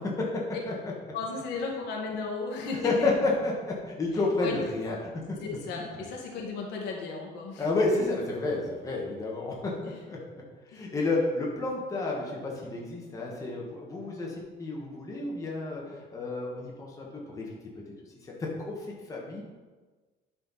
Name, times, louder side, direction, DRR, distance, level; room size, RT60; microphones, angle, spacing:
voice 1, 1.1-3.2 4.4-4.6 5.4-7.7 9.8-10.0 10.7-10.8, left 4 dB, 80° left, -1 dB, 1.8 m, -35 dB
voice 2, 2.8-3.5 3.9-5.0 5.8-5.9 7.6-9.6 9.8-10.2 10.7-15.8 16.1-17.4 18.7-18.8 19.1-19.4, left 3 dB, 20° left, -3 dB, 1.4 m, -30 dB
11.0 x 4.4 x 4.2 m, 1.3 s
cardioid pair, 170°, 17 cm